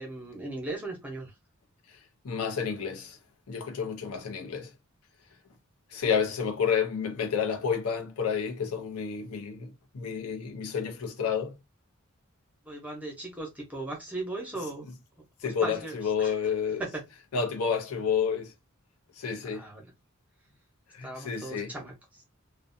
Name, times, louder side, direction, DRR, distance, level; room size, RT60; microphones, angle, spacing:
voice 1, 0.0-1.3 12.7-14.9 15.4-16.3 19.4-19.9 21.0-22.2, right 2 dB, 5° right, 0.7 m, -38 dB
voice 2, 1.9-3.2 3.5-4.7 5.9-11.6 15.4-16.8 17.3-18.5 19.1-19.7 20.9-21.7, left 6 dB, 85° left, 0.6 m, -30 dB
2.5 x 2.1 x 2.6 m
head